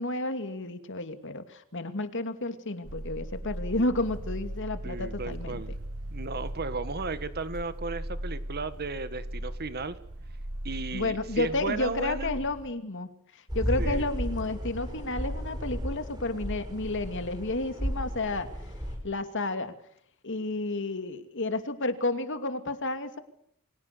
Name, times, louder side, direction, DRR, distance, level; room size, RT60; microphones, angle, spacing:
voice 1, 0.0-5.6 10.9-13.1 13.5-18.5 19.0-19.7 20.2-23.2, left 2 dB, 60° left, 9 dB, 2.6 m, -31 dB
sound 1, 2.8-12.7, right 1 dB, 80° right, 1.6 m, -38 dB
voice 2, 4.8-5.7 6.1-10.0 10.6-12.3 13.8-14.1, right 3 dB, 45° right, 12 dB, 1.7 m, -35 dB
sound 2, 13.5-19.0, equal, 20° right, 7.6 m, -34 dB
29.5 x 24.0 x 6.9 m, 0.69 s
head